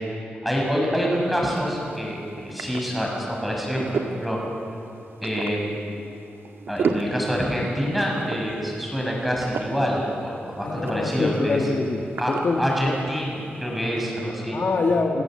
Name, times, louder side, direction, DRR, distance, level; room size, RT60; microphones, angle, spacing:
voice 1, 0.4-4.4 5.2-5.7 6.7-11.7 12.2-12.3 12.6-14.6, equal, ahead, -2 dB, 6.5 m, -26 dB
sound 1, 1.2-14.1, right 5 dB, 90° right, 1.5 m, -35 dB
voice 2, 10.6-12.9 14.5-15.2, left 3 dB, 55° left, 3 dB, 1.5 m, -25 dB
30.0 x 17.0 x 7.7 m, 2.7 s
wide cardioid pair, 120°, 4 cm